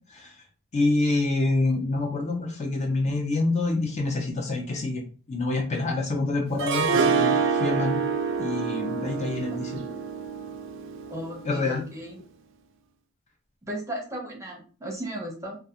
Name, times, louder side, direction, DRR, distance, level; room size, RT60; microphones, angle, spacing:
voice 1, 0.7-5.0 5.3-8.0 8.4-9.8 11.4-11.8, left 2 dB, 35° left, 1 dB, 0.5 m, -26 dB
Harp, 6.6-11.7, right 6 dB, 60° right, 0.3 m, -27 dB
voice 2, 11.1-12.2 13.7-15.6, right 1 dB, 15° right, -1 dB, 0.6 m, -35 dB
2.3 x 2.3 x 2.7 m, 0.39 s
head